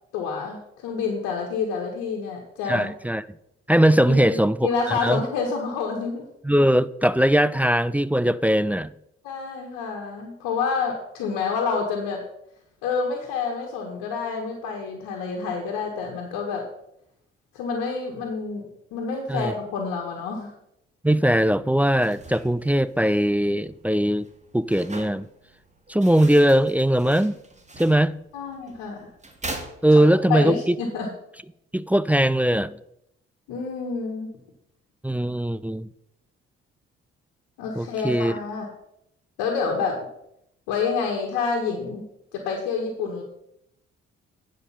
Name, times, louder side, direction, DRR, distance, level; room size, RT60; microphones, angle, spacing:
voice 1, 0.1-2.9 4.1-6.2 9.2-12.2 12.8-16.7 17.5-20.5 28.3-29.1 29.9-31.1 33.5-34.3 37.6-38.7 39.4-40.1 40.7-42.1 42.3-43.2, left 5 dB, 75° left, 1.5 m, -28 dB
voice 2, 2.7-3.2 3.7-4.6 4.9-5.2 6.4-8.9 19.3-19.5 21.0-24.3 24.5-25.3 25.9-27.4 27.8-28.1 29.8-30.8 31.7-32.7 35.0-35.9 37.8-38.3, right 1 dB, 5° right, 0.4 m, -20 dB
sound 1, 22.0-30.4, right 2 dB, 20° right, 2.0 m, -42 dB
9.7 x 5.3 x 5.7 m
hypercardioid pair, 45°, 31 cm